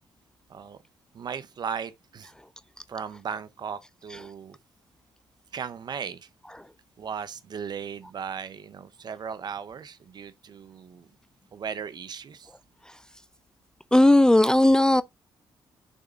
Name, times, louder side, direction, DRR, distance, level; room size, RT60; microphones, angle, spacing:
voice 1, 1.1-2.3 2.9-4.6 5.5-6.3 7.0-11.1 11.5-12.5, right 7 dB, 55° right, 0.9 m, -37 dB
voice 2, 13.9-15.0, left 1 dB, 10° left, 0.5 m, -17 dB
6.6 x 3.7 x 4.0 m
supercardioid pair, 60°, 9 cm